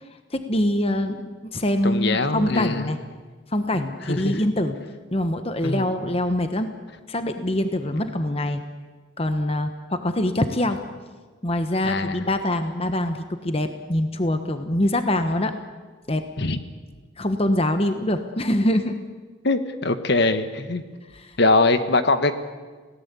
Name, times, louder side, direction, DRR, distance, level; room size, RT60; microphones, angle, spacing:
voice 1, 0.3-1.2 1.5-3.0 3.5-4.8 5.1-6.7 7.1-8.6 9.2-10.8 11.4-15.6 16.1-16.3 17.2-19.0 21.1-21.4, left 1 dB, 30° left, 8 dB, 1.2 m, -24 dB
voice 2, 1.8-2.9 4.1-4.4 5.6-5.8 11.8-12.2 16.4-16.6 19.4-20.8 21.4-22.3, left 2 dB, 55° left, 9 dB, 1.4 m, -22 dB
29.5 x 17.5 x 8.4 m, 1.4 s
head